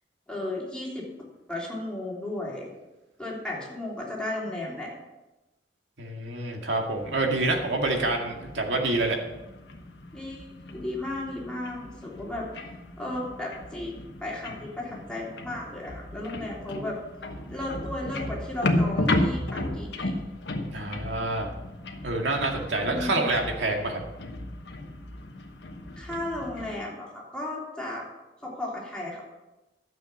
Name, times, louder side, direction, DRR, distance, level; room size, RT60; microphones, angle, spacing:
voice 1, 0.3-1.0 1.5-2.7 3.2-4.9 10.1-12.4 13.0-17.0 17.5-20.1 22.9-23.3 26.0-28.0 28.4-29.3, left 1 dB, 5° left, -5 dB, 3.3 m, -34 dB
voice 2, 6.0-9.2 20.7-21.5 22.0-24.0, right 2 dB, 80° right, 1 dB, 2.1 m, -27 dB
sound 1, 7.0-26.8, left 1 dB, 70° left, 1.2 m, -34 dB
12.5 x 7.6 x 6.0 m, 1.0 s
head